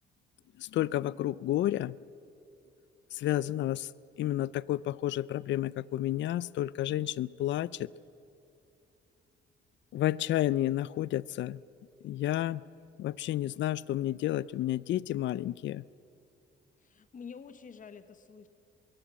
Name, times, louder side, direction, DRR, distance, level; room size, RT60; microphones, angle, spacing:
voice 1, 0.6-2.0 3.1-3.9 4.2-7.9 9.9-11.6 12.0-12.6 13.0-15.8, left 13 dB, 70° left, 22 dB, 0.5 m, -31 dB
voice 2, 16.8-18.5, left 6 dB, 40° left, 12 dB, 1.2 m, -48 dB
22.0 x 16.5 x 8.3 m, 2.7 s
cardioid pair, 90°, 20 cm